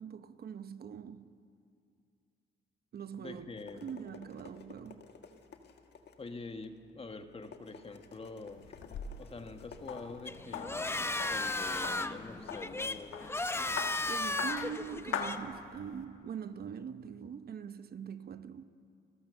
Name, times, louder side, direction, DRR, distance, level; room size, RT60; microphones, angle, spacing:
voice 1, 0.0-1.4 2.9-3.5 3.8-5.1 14.1-18.6, right 7 dB, 50° right, 0.9 m, -43 dB
sound 1, 3.2-12.1, left 5 dB, 60° left, 1.7 m, -56 dB
voice 2, 3.2-3.9 6.2-8.7 9.2-13.3, left 3 dB, 30° left, 1.5 m, -46 dB
sound 2, 8.5-16.0, left 6 dB, 85° left, 1.5 m, -43 dB
sound 3, 10.3-15.4, left 2 dB, 10° left, 0.7 m, -35 dB
29.5 x 13.0 x 6.9 m
cardioid pair, 90°, 20 cm